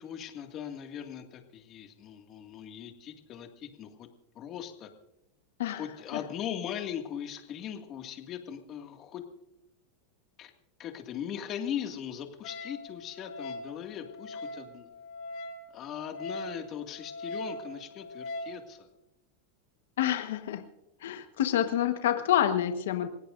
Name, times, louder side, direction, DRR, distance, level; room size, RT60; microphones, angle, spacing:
voice 1, 0.0-4.1 4.4-4.9 5.7-9.2 10.4-10.5 10.8-14.9 15.7-18.9, left 9 dB, 35° left, 5 dB, 2.1 m, -39 dB
Wind instrument woodwind instrument, 12.4-18.6, left 1 dB, 55° left, 2.3 m, -41 dB
voice 2, 20.0-20.6 21.0-23.1, left 11 dB, 90° left, 7 dB, 1.3 m, -27 dB
28.5 x 16.5 x 2.6 m, 0.87 s
supercardioid pair, 145°, 0 cm